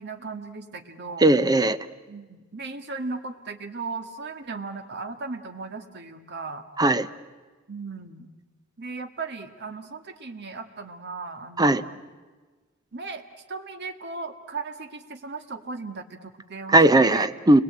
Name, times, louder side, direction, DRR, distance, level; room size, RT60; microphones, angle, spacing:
voice 1, 0.0-1.2 2.1-6.7 7.7-8.3 8.8-12.0 12.9-13.2 13.5-17.3, right 4 dB, 55° right, 6 dB, 1.9 m, -36 dB
voice 2, 1.2-1.8 6.8-7.1 11.6-11.8 16.7-17.6, right 1 dB, 20° right, 12 dB, 0.8 m, -18 dB
29.5 x 22.0 x 8.8 m, 1.3 s
head